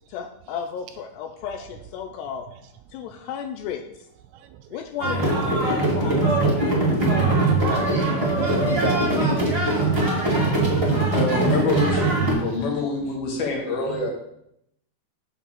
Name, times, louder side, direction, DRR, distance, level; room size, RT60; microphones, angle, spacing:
voice 1, 0.1-2.5 2.9-3.8 4.7-6.1, left 8 dB, 80° left, 5 dB, 2.6 m, -33 dB
voice 2, 4.5-4.8 6.0-9.2 12.3-12.6 13.8-14.1, right 10 dB, 85° right, 9 dB, 2.6 m, -37 dB
sound 1, 5.0-12.3, right 2 dB, 20° right, 0.8 m, -21 dB
voice 3, 11.1-14.1, left 3 dB, 65° left, 0 dB, 3.0 m, -26 dB
7.2 x 4.6 x 7.0 m, 0.78 s
omnidirectional pair, 5.2 m